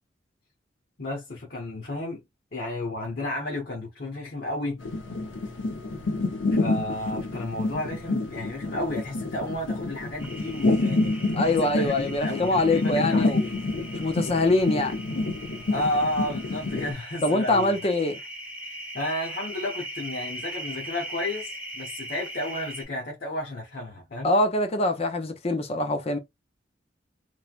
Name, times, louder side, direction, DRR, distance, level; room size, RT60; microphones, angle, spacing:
voice 1, 1.0-2.2 2.5-4.8 6.5-11.1 11.4-13.4 15.7-17.8 18.9-24.3, left 1 dB, 55° left, 0.9 m, -32 dB
sound 1, 4.8-16.9, left 2 dB, 85° left, 0.7 m, -28 dB
sound 2, 10.2-22.8, right 1 dB, 10° right, 0.8 m, -40 dB
voice 2, 11.3-13.5 13.9-15.0 17.2-18.2 24.2-26.2, left 2 dB, 35° left, 0.6 m, -24 dB
3.1 x 2.1 x 2.4 m
head